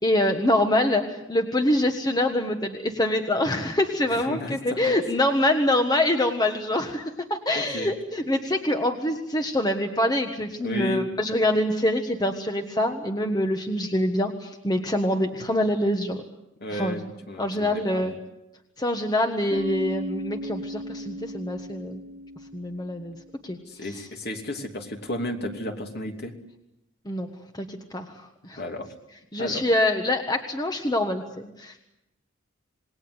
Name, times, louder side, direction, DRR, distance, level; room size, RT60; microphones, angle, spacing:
voice 1, 0.0-16.2 16.7-17.1 17.4-18.1 18.8-22.0 22.5-23.1 23.4-23.6 23.9-24.0 27.0-27.3 27.5-28.6 29.3-31.8, left 1 dB, 20° left, 5 dB, 1.4 m, -25 dB
voice 2, 4.3-5.0 7.5-7.9 10.6-11.1 16.6-18.1 23.7-26.4 28.6-28.9 29.4-29.6, left 1 dB, 50° left, 3 dB, 2.8 m, -33 dB
Bass guitar, 19.5-23.3, equal, 30° right, 2.0 m, -36 dB
27.5 x 20.5 x 8.0 m, 0.89 s
head